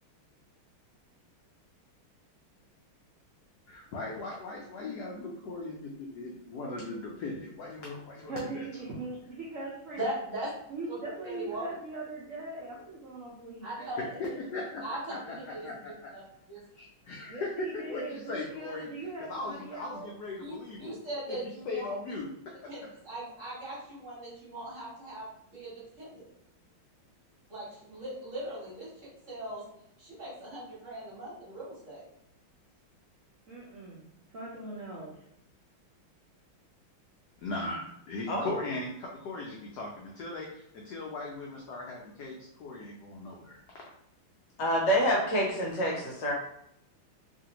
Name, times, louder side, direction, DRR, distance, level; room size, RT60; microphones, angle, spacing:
voice 1, 3.7-8.6 14.0-15.9 17.1-18.9 19.2-21.0 21.3-22.7 37.4-43.6, left 2 dB, 85° left, -2 dB, 0.9 m, -38 dB
voice 2, 8.3-10.1 10.7-14.3 17.3-20.1 33.5-34.0 34.3-35.1, right 2 dB, 75° right, -5 dB, 0.7 m, -40 dB
voice 3, 10.0-10.5 11.2-11.7 13.6-14.0 14.8-15.7 19.4-19.5 20.4-21.9 22.7-26.3 27.5-29.6 30.0-32.0, right 1 dB, 45° right, -7 dB, 1.2 m, -39 dB
voice 4, 44.6-46.3, equal, 70° left, -2 dB, 1.1 m, -27 dB
3.1 x 2.6 x 2.8 m, 0.77 s
omnidirectional pair, 2.3 m